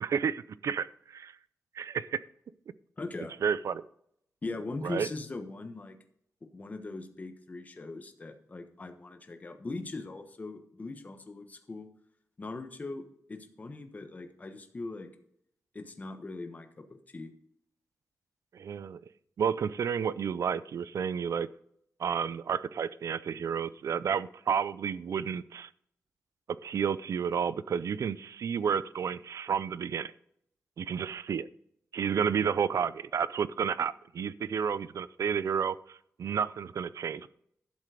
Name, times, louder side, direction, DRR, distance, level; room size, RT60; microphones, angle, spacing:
voice 1, 0.0-1.3 1.8-2.2 3.4-3.8 4.8-5.1 18.5-19.0 19.4-21.5 22.0-25.7 26.5-30.1 30.8-31.5 31.9-37.3, right 7 dB, 65° right, 17 dB, 0.5 m, -31 dB
voice 2, 3.0-3.3 4.4-6.0 6.4-11.9 12.4-15.1 15.7-17.3, left 3 dB, 30° left, 6 dB, 1.2 m, -40 dB
11.5 x 7.5 x 4.9 m, 0.71 s
wide cardioid pair, 160°, 6 cm